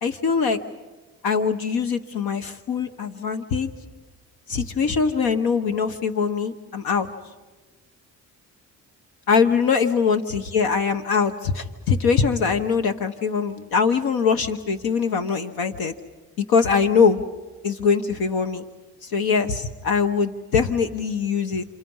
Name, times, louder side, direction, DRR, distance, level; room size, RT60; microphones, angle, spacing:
voice 1, 0.0-0.6 1.2-3.7 4.5-7.1 9.3-15.9 16.4-17.2 17.6-18.6 19.0-21.6, left 5 dB, 75° left, 8 dB, 1.3 m, -22 dB
29.5 x 25.5 x 5.6 m, 1.2 s
supercardioid pair, 65°, 36 cm